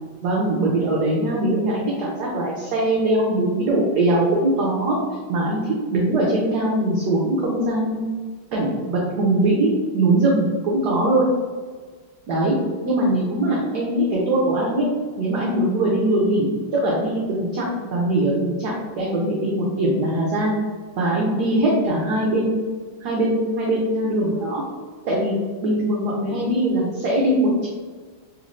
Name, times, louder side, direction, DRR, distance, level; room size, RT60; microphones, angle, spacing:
voice 1, 0.2-5.0 5.3-8.1 8.5-11.3 12.3-12.5 12.8-14.9 15.2-20.6 21.0-22.6 23.0-24.6 25.1-25.4 25.6-27.7, right 1 dB, 70° right, -4 dB, 1.0 m, -21 dB
3.6 x 3.1 x 2.5 m, 1.5 s
omnidirectional pair, 2.3 m